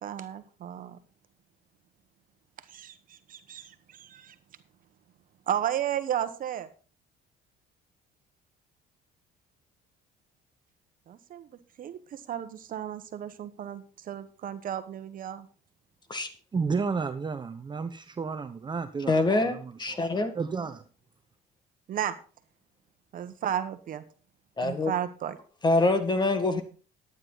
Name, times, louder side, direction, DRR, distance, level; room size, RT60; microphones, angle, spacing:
voice 1, 0.0-1.0 2.7-4.3 5.5-6.7 11.1-15.5 21.9-22.2 23.1-24.0 24.6-25.4, right 10 dB, 55° right, 1.1 m, -34 dB
voice 2, 16.5-19.1 19.4-20.1 20.3-20.8, right 5 dB, 25° right, 0.9 m, -32 dB
voice 3, 19.1-20.4 24.6-24.9 25.6-26.6, left 2 dB, 25° left, 1.8 m, -25 dB
12.0 x 9.8 x 4.0 m
cardioid pair, 110°, 17 cm